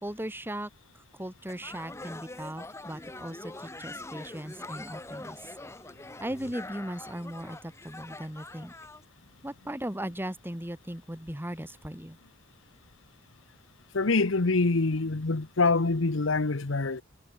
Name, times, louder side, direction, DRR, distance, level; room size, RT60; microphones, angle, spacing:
voice 1, 0.0-5.5 6.2-8.7 9.4-12.2, right 1 dB, 10° right, 3.0 m, -38 dB
sound 1, 1.5-9.0, left 2 dB, 15° left, 1.2 m, -44 dB
voice 2, 13.9-17.0, left 3 dB, 75° left, 1.0 m, -25 dB
head